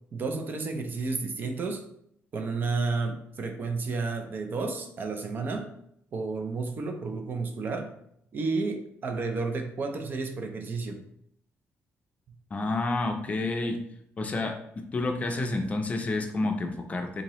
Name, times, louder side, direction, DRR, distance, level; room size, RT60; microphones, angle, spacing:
voice 1, 0.1-1.9 2.3-5.7 6.1-7.9 8.3-11.0, right 4 dB, 40° right, 5 dB, 0.4 m, -31 dB
voice 2, 12.5-13.8 14.2-14.6 14.9-17.2, left 2 dB, 30° left, 4 dB, 0.4 m, -29 dB
3.7 x 2.8 x 2.9 m, 0.72 s
cardioid pair, 140°, 5 cm